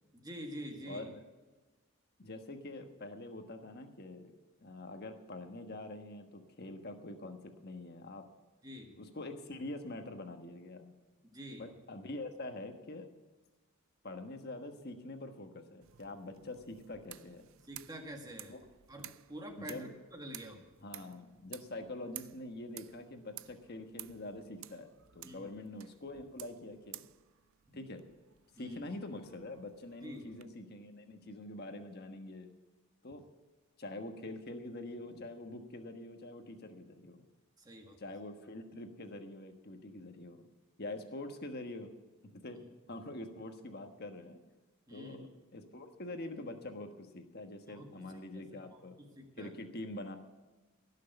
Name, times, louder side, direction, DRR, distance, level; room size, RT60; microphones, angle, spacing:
voice 1, 0.1-1.1 8.6-9.0 11.2-11.7 17.6-18.5 18.9-20.6 25.2-25.5 28.5-28.8 30.0-30.3 37.6-38.0 44.9-45.3 47.7-48.4 48.7-49.5, equal, 15° right, 2 dB, 1.7 m, -47 dB
voice 2, 0.9-1.2 2.2-4.3 4.6-8.2 9.0-10.9 11.6-13.1 14.0-17.5 18.5-18.6 19.6-19.9 20.8-27.0 27.7-28.0 28.6-32.5 33.0-33.2 33.8-37.3 38.0-40.5 40.8-41.9 42.4-44.4 44.9-45.3 45.5-49.0 49.4-50.2, left 2 dB, 45° left, 6 dB, 1.3 m, -45 dB
sound 1, 15.8-30.5, right 15 dB, 60° right, 0.4 m, -54 dB
17.0 x 6.6 x 8.2 m, 1.2 s
head